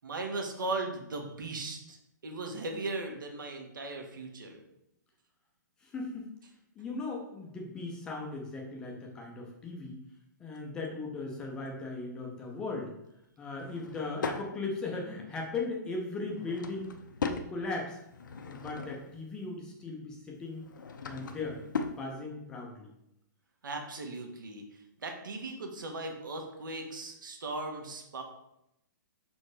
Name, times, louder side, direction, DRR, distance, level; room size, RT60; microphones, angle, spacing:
voice 1, 0.0-2.0 2.2-4.6 23.6-24.6 25.0-28.2, right 2 dB, 85° right, 3 dB, 1.6 m, -37 dB
voice 2, 5.8-6.3 6.8-10.0 10.4-12.9 13.4-17.0 17.2-18.0 18.4-20.7 21.0-21.6 22.0-22.9, left 3 dB, 5° left, -1 dB, 0.5 m, -38 dB
Drawer open or close / Wood, 13.5-14.5 16.2-17.5 18.0-19.2 20.5-22.0, left 5 dB, 75° left, 0.8 m, -38 dB
5.8 x 4.4 x 4.8 m, 0.83 s
hypercardioid pair, 175°, 10 cm